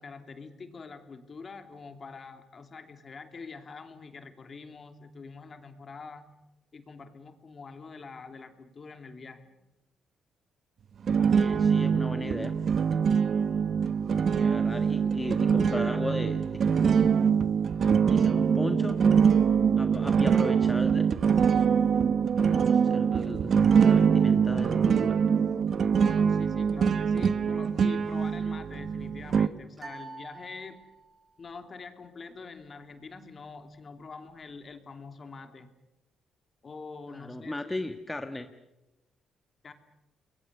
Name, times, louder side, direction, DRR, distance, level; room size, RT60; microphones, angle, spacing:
voice 1, 0.0-6.3 6.7-9.5 26.0-30.8 31.4-35.7 36.6-38.0 39.6-39.7, left 4 dB, 40° left, 7 dB, 2.9 m, -45 dB
sound 1, 11.1-29.5, right 6 dB, 55° right, 1.0 m, -24 dB
voice 2, 11.2-12.5 14.3-16.4 16.8-16.9 18.1-19.0 19.8-21.2 21.9-22.0 22.5-25.2 37.1-38.5, left 2 dB, 15° left, 7 dB, 1.5 m, -36 dB
sound 2, 29.8-31.3, right 3 dB, 30° right, 6.7 m, -46 dB
29.5 x 21.5 x 6.8 m, 0.99 s
cardioid pair, 90°, 0 cm